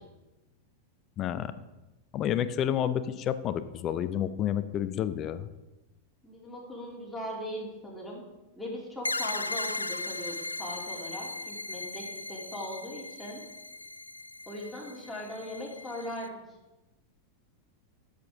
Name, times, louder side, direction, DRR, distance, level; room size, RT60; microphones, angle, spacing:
voice 1, 1.2-1.5 2.1-5.5, left 10 dB, 30° left, 13 dB, 0.5 m, -30 dB
voice 2, 6.2-8.2 8.6-13.4 14.5-16.4, left 1 dB, ahead, -5 dB, 3.0 m, -39 dB
sound 1, 9.0-16.3, left 2 dB, 85° left, 0.3 m, -37 dB
13.0 x 6.8 x 3.7 m, 1.0 s
figure-of-eight pair, 90°, 0 cm